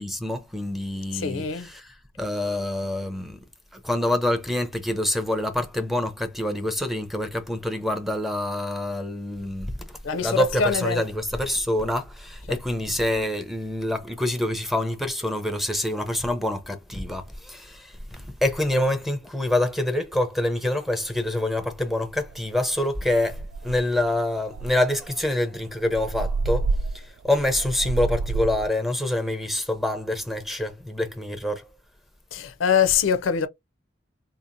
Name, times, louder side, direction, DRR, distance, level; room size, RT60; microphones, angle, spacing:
voice 1, 0.0-3.4 3.7-26.7 26.9-31.7, left 1 dB, ahead, 0.5 m, -26 dB
voice 2, 1.1-1.7 10.0-11.1 12.5-12.6 32.3-33.5, left 7 dB, 70° left, 0.5 m, -24 dB
sound 1, 21.8-21.9 22.3-22.6 22.9-23.0 23.3-24.0 24.5-28.7, right 3 dB, 90° right, 0.3 m, -29 dB
3.8 x 2.8 x 2.5 m
head